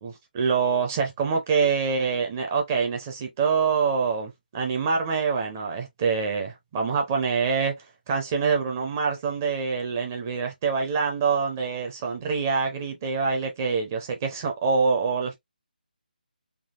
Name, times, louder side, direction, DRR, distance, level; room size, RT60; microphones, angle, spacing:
voice 1, 0.0-7.8 8.1-15.4, right 5 dB, 15° right, 0.4 m, -25 dB
3.5 x 2.3 x 2.3 m
figure-of-eight pair, 170°, 5 cm